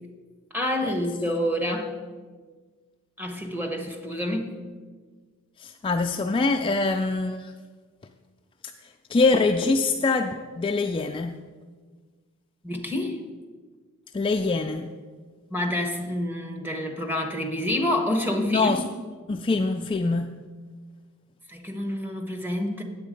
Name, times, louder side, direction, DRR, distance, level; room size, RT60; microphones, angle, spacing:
voice 1, 0.5-1.9 3.2-4.5 12.6-13.2 15.5-18.8 21.5-22.8, left 1 dB, 10° right, 1.1 m, -28 dB
voice 2, 5.6-7.5 8.6-11.4 14.1-14.9 18.4-18.9 19.3-20.3, left 3 dB, 25° left, 0.3 m, -24 dB
8.9 x 8.3 x 5.1 m
head